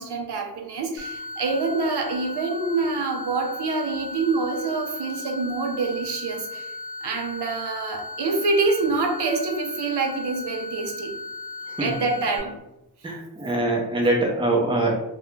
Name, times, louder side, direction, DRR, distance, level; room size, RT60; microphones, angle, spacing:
voice 1, 0.0-6.7 7.0-11.1 11.8-12.6, right 3 dB, 80° right, 2 dB, 0.6 m, -26 dB
sound 1, 1.0-12.4, left 2 dB, 35° left, 0.9 m, -36 dB
voice 2, 13.0-14.9, right 2 dB, 15° right, -1 dB, 0.5 m, -23 dB
2.3 x 2.2 x 3.0 m, 0.92 s
wide cardioid pair, 85°, 39 cm